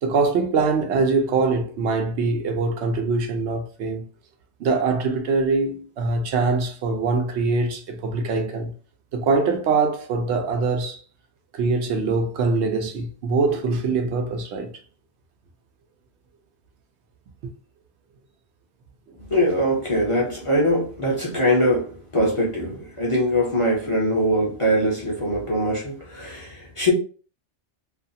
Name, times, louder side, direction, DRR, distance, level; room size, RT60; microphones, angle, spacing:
voice 1, 0.0-4.0 4.6-8.7 9.1-11.0 11.5-14.7 17.4-17.5, right 4 dB, 75° right, 0.8 m, -23 dB
voice 2, 19.3-26.9, equal, 35° left, 0.6 m, -22 dB
2.5 x 2.3 x 2.6 m
omnidirectional pair, 1.2 m